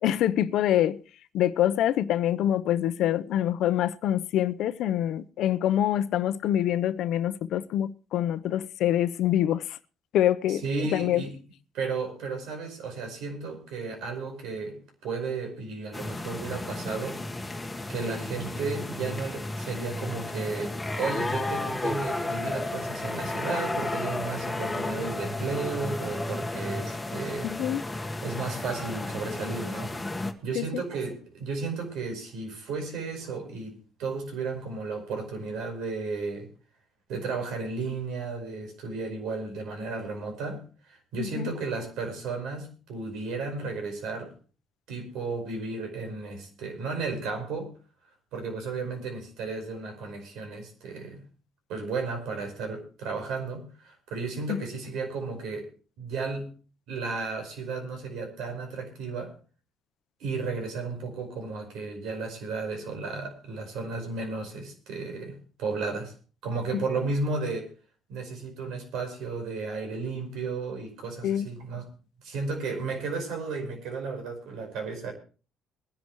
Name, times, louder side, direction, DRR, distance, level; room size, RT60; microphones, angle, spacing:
voice 1, 0.0-1.0 1.3-9.8 10.1-10.6 10.9-11.2 27.4-27.8 30.5-30.6 41.2-41.5 54.5-54.6 66.7-66.8 71.2-71.5, left 11 dB, 70° left, 0.8 m, -25 dB
voice 2, 10.5-11.3 11.7-17.2 17.9-27.5 28.2-36.5 37.1-44.3 44.9-47.7 48.3-51.2 51.7-55.7 56.0-56.5 56.9-59.4 60.2-66.1 66.4-67.7 68.1-71.9 72.2-75.1, right 4 dB, 80° right, 5.0 m, -34 dB
sound 1, 15.9-30.3, left 2 dB, 10° left, 1.5 m, -33 dB
22.5 x 10.5 x 3.1 m
cardioid pair, 110°, 0 cm